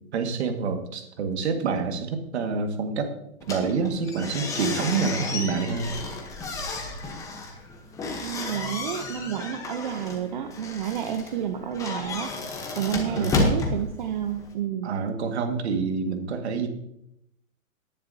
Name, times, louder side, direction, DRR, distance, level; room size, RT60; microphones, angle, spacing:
voice 1, 0.1-3.1 3.5-5.9 13.1-13.5 14.8-16.7, right 5 dB, 50° right, 5 dB, 1.9 m, -27 dB
sound 1, 3.4-14.5, left 3 dB, 10° left, 1.0 m, -32 dB
voice 2, 8.2-12.3 12.8-14.9, right 9 dB, 35° right, 6 dB, 0.7 m, -30 dB
17.5 x 10.0 x 2.8 m, 0.79 s
hypercardioid pair, 150°, 42 cm